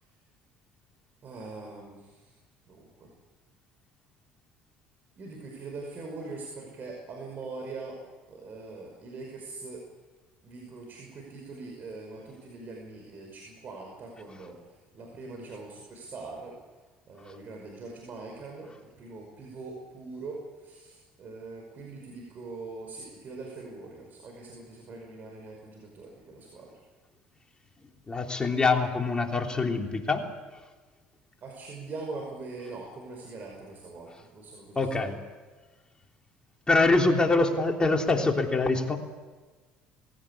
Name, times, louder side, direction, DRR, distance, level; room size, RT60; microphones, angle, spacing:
voice 1, 1.2-2.3 2.7-3.1 5.2-9.9 10.4-14.6 14.9-16.6 17.1-26.8 31.4-35.1, right 3 dB, 50° right, 1 dB, 5.4 m, -42 dB
voice 2, 28.1-30.3 34.7-35.2 36.7-39.0, left 3 dB, 20° left, 2 dB, 3.2 m, -24 dB
20.0 x 16.5 x 8.6 m, 1.3 s
supercardioid pair, 75°, 4 cm